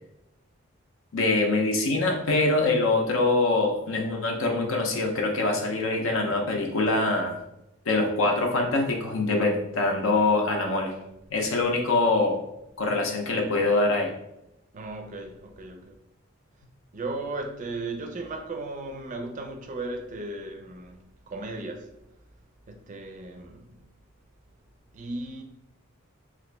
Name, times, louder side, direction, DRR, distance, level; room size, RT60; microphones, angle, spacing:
voice 1, 1.1-7.4 7.9-10.9 11.3-12.4 12.8-14.1, left 2 dB, 80° left, 0.6 m, -24 dB
voice 2, 14.7-16.0 16.9-21.9 22.7-23.7 24.9-25.4, right 2 dB, 40° right, 0.4 m, -36 dB
2.9 x 2.5 x 3.2 m
head